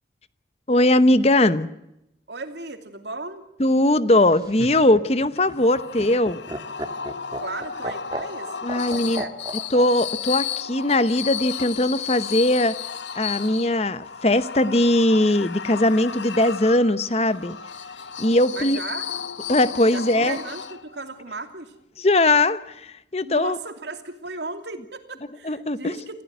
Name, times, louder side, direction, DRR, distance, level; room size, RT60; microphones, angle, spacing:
voice 1, 0.7-1.7 3.6-6.4 8.6-9.2 9.7-12.7 13.1-17.6 18.2-18.8 19.5-20.4 22.0-23.6 25.5-25.9, left 1 dB, 35° left, 14 dB, 0.9 m, -20 dB
voice 2, 2.3-3.5 7.4-9.3 18.5-19.1 19.9-21.7 23.2-26.2, right 3 dB, 75° right, 7 dB, 2.8 m, -36 dB
Laughter, 4.2-9.9 11.2-11.8, right 1 dB, 25° right, 1.9 m, -35 dB
sound 1, 5.4-21.1, left 7 dB, 80° left, 1.0 m, -34 dB
27.5 x 15.5 x 9.3 m, 0.85 s
head